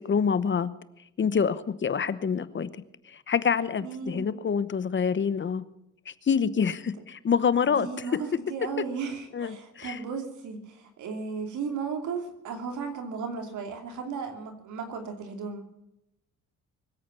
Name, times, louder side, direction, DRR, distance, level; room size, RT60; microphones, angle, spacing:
voice 1, 0.1-0.7 1.2-2.8 3.3-5.6 6.1-7.9 9.3-10.0, left 6 dB, 40° left, 15 dB, 0.9 m, -26 dB
voice 2, 3.8-4.3 7.7-15.6, right 5 dB, 75° right, 5 dB, 2.8 m, -35 dB
24.0 x 8.5 x 6.9 m, 0.84 s
cardioid pair, 90°, 30 cm